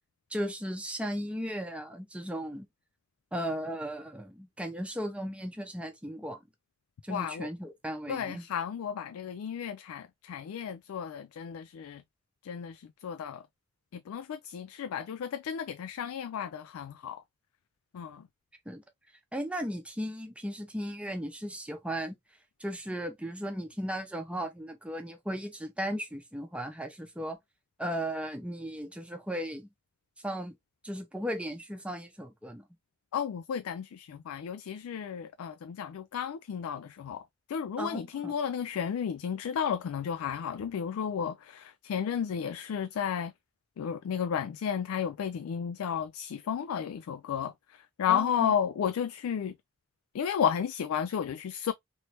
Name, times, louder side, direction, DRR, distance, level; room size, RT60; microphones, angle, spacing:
voice 1, 0.3-2.7 3.3-6.4 7.0-8.4 18.7-18.8 19.3-22.2 22.6-27.4 27.8-29.7 30.2-30.5 30.8-32.7 37.8-38.4 48.1-48.6, equal, 5° right, 0.6 m, -36 dB
voice 2, 7.1-7.5 8.1-12.0 12.4-13.4 13.9-17.2 17.9-18.2 33.1-37.2 37.5-43.3 43.8-47.5 48.0-49.5 50.1-51.7, left 8 dB, 85° left, 0.3 m, -33 dB
3.1 x 3.1 x 2.9 m
head